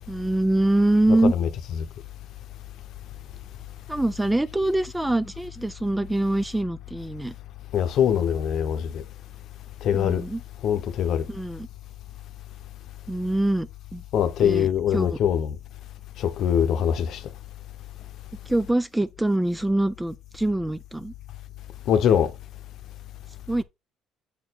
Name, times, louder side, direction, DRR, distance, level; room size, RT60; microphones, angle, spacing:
voice 1, 0.1-1.3 3.9-7.3 9.9-10.4 11.3-11.7 13.1-14.0 14.4-15.2 18.5-21.1 23.5-23.6, right 1 dB, 5° right, 0.3 m, -24 dB
voice 2, 7.7-9.0 9.8-10.2 10.6-11.3 14.1-15.6 16.2-17.2 21.9-22.3, left 9 dB, 55° left, 0.8 m, -22 dB
7.3 x 4.5 x 4.1 m
cardioid pair, 155°, 0 cm